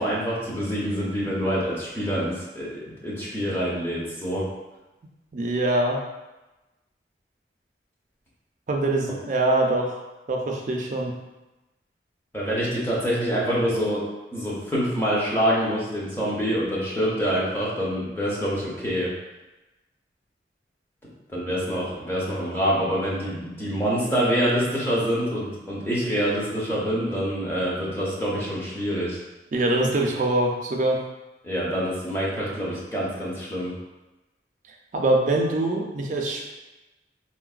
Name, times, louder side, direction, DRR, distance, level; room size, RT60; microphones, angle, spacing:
voice 1, 0.0-4.4 12.3-14.0 14.3-19.1 21.3-29.2 31.4-33.7, equal, 10° left, -6 dB, 0.7 m, -26 dB
voice 2, 5.3-6.0 8.7-9.9 10.3-11.1 29.5-31.0 34.9-36.5, right 2 dB, 40° right, 1 dB, 0.4 m, -23 dB
3.8 x 2.1 x 2.3 m, 1.1 s
head